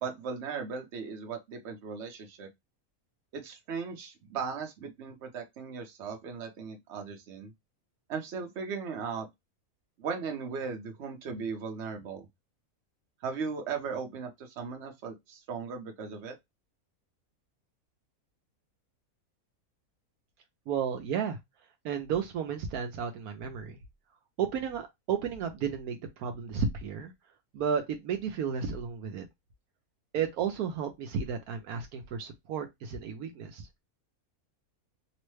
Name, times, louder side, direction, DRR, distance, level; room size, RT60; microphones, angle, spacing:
voice 1, 0.0-2.5 3.3-7.5 8.1-9.3 10.0-12.3 13.2-16.4, right 5 dB, 55° right, 1.0 m, -37 dB
voice 2, 20.7-21.4 21.8-23.8 24.4-27.1 27.5-29.3 30.1-33.7, right 7 dB, 80° right, 1.1 m, -33 dB
3.1 x 2.1 x 3.1 m
omnidirectional pair, 1.6 m